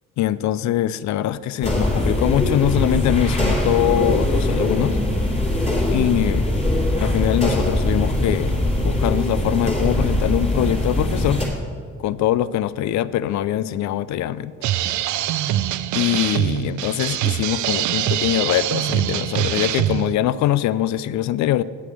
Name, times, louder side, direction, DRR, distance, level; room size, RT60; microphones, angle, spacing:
voice 1, 0.2-5.0 5.9-6.5 7.0-11.4 12.0-14.5 15.9-21.6, left 12 dB, 70° left, 17 dB, 0.4 m, -22 dB
sound 1, 1.6-11.5, left 1 dB, 20° left, 3.0 m, -21 dB
sound 2, 14.6-20.1, right 12 dB, 75° right, 0.5 m, -23 dB
8.3 x 7.9 x 6.7 m, 2.1 s
cardioid pair, 90°, 30 cm